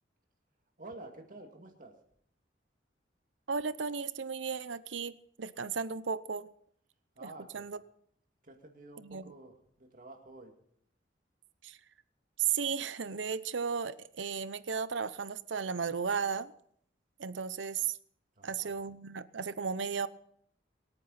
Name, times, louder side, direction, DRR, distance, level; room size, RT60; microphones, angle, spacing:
voice 1, 0.8-2.0 7.2-7.7 8.4-10.5 18.4-18.8, right 2 dB, 45° right, 3 dB, 2.3 m, -50 dB
voice 2, 3.5-6.5 7.2-7.8 9.0-9.3 11.6-11.8 12.4-16.5 17.2-18.0 18.4-20.1, right 6 dB, 85° right, 16 dB, 0.7 m, -35 dB
23.5 x 9.0 x 4.2 m, 0.65 s
head